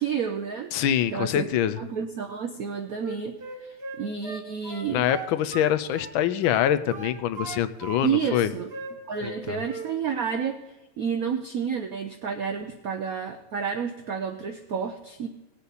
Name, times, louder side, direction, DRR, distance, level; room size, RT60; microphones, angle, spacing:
voice 1, 0.0-0.7 1.1-1.5 1.8-5.1 8.0-8.7 9.1-10.6 11.0-15.3, right 7 dB, 80° right, 7 dB, 0.8 m, -30 dB
voice 2, 0.7-1.8 4.9-8.5 9.2-9.6, left 10 dB, 75° left, 13 dB, 1.3 m, -25 dB
Wind instrument woodwind instrument, 3.0-6.1 6.4-8.0 8.3-9.4 9.6-9.9, right 4 dB, 35° right, 1.1 m, -38 dB
18.0 x 8.3 x 4.1 m, 0.99 s
omnidirectional pair, 2.3 m